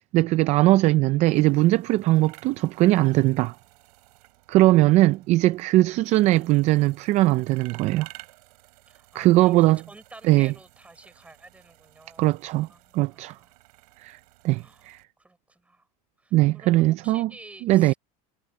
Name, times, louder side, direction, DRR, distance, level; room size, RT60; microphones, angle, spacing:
voice 1, 0.1-3.5 4.5-8.1 9.2-9.8 10.3-10.5 12.2-12.7 12.9-13.4 14.0-14.2 14.4-15.0 16.3-17.3 17.6-17.9, right 17 dB, 35° right, 0.4 m, -20 dB
sound 1, 1.2-15.0, right 21 dB, 80° right, 6.9 m, -53 dB
voice 2, 4.6-5.2 8.9-12.3 12.7-13.5 14.5-15.9 16.2-18.0, right 2 dB, 5° right, 6.2 m, -50 dB
supercardioid pair, 155°, 20 cm